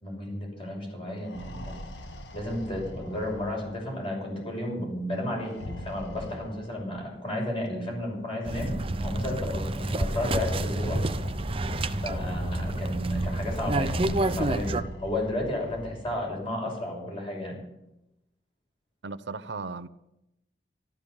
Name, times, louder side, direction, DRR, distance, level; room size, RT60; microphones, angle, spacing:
voice 1, 0.0-1.8 2.3-8.7 9.0-11.0 12.0-17.6, left 1 dB, 30° left, 6.1 m, -33 dB
sound 1, 1.1-4.0 5.4-7.0 8.0-8.1 8.5-8.6 9.9-13.0 13.6-16.2, left 1 dB, 85° left, 1.5 m, -40 dB
sound 2, 8.4-14.8, right 2 dB, 30° right, 0.7 m, -29 dB
voice 2, 19.0-19.9, right 4 dB, 90° right, 0.7 m, -36 dB
13.5 x 13.0 x 7.1 m
head